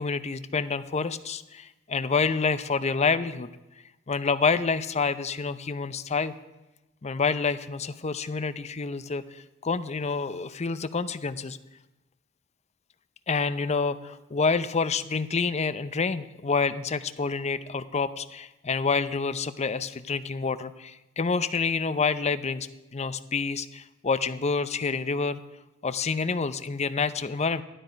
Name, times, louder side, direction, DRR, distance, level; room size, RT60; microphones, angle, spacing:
voice 1, 0.0-3.5 4.1-6.3 7.0-11.6 13.3-25.4 25.8-27.6, left 4 dB, 35° left, 12 dB, 0.6 m, -28 dB
14.0 x 12.5 x 5.1 m, 1.0 s
head